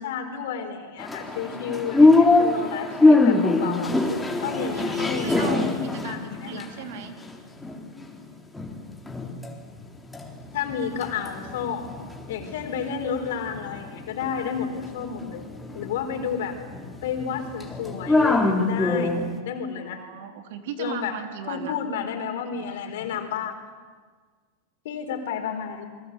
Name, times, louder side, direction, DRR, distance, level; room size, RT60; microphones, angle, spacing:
voice 1, 0.0-3.9 4.4-5.6 6.0-6.8 10.5-11.9 12.3-15.5 15.7-16.6 17.0-20.0 20.8-21.1 21.5-23.6 24.8-25.9, left 7 dB, 70° left, 6 dB, 4.4 m, -31 dB
sound 1, 1.0-8.2 8.5-9.5 9.8-19.4, left 2 dB, 10° left, 3.7 m, -24 dB
voice 2, 4.7-7.1 19.7-21.8, right 7 dB, 65° right, 6 dB, 3.4 m, -37 dB
28.0 x 22.5 x 8.3 m, 1.6 s
hypercardioid pair, 100°, 0 cm